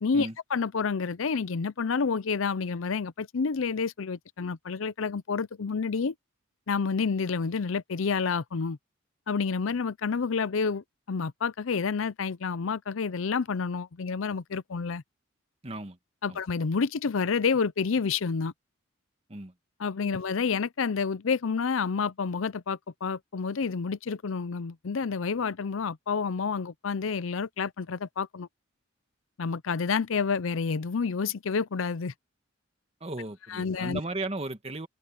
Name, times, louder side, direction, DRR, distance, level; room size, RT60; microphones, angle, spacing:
voice 1, 0.0-6.1 6.7-8.8 9.3-15.0 16.2-18.5 19.8-28.5 29.4-32.1 33.5-34.0, left 5 dB, 80° left, 0.6 m, -29 dB
voice 2, 15.6-16.0 16.3-16.4 19.3-19.5 20.0-20.1 33.0-34.9, right 2 dB, 30° right, 1.5 m, -36 dB
open air
head